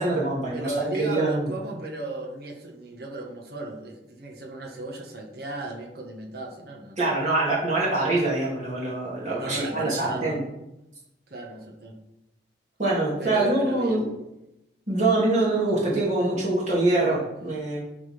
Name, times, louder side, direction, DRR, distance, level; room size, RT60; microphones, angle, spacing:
voice 1, 0.0-0.7 1.0-1.5 7.0-10.4 12.8-14.0 14.9-17.8, right 2 dB, 40° right, -6 dB, 2.7 m, -24 dB
voice 2, 0.5-7.0 9.3-10.4 11.3-12.0 13.2-14.2, right 2 dB, 55° right, -1 dB, 1.6 m, -35 dB
12.0 x 4.0 x 5.2 m, 0.92 s
head